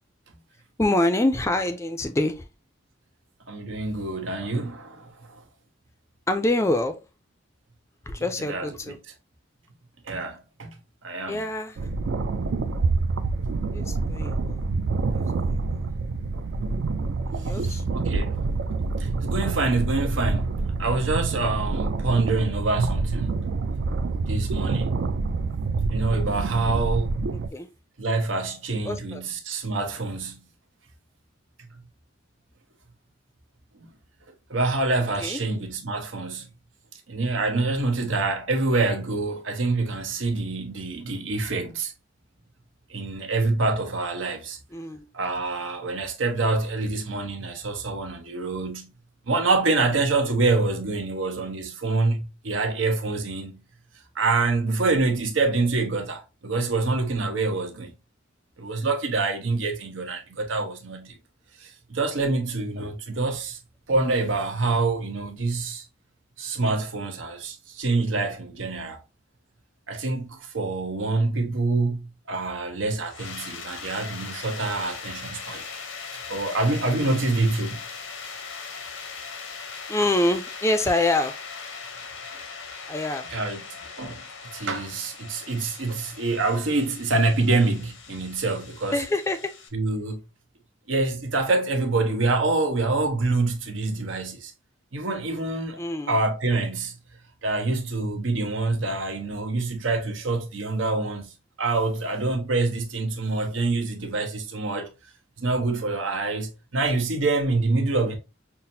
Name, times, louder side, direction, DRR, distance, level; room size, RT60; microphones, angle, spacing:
voice 1, 0.8-2.5 6.3-7.0 8.1-9.0 11.3-11.9 13.7-14.6 15.2-15.9 17.3-17.8 27.5-27.7 28.8-29.2 35.2-35.4 44.7-45.1 79.9-81.3 82.9-83.2 88.9-89.5 95.8-96.2, left 2 dB, 15° left, 0.4 m, -26 dB
voice 2, 3.5-5.4 8.4-8.9 10.0-10.8 11.0-11.4 17.6-18.4 19.0-23.4 24.2-25.0 25.9-27.2 28.0-30.4 33.8-33.9 34.5-36.5 37.1-41.9 42.9-44.6 45.1-48.9 49.3-53.6 54.1-57.9 58.6-61.1 61.6-63.6 63.9-65.8 66.4-69.0 69.9-75.6 76.3-77.8 83.3-83.6 84.0-84.2 84.5-89.0 89.7-90.2 90.9-94.5 94.9-95.8 96.1-97.0 97.4-104.9 105.4-108.2, right 3 dB, 90° right, 0.9 m, -26 dB
sound 1, 11.8-27.5, right 3 dB, 70° right, 0.4 m, -27 dB
sound 2, 73.0-89.7, left 5 dB, 85° left, 0.8 m, -39 dB
5.7 x 2.0 x 2.6 m
head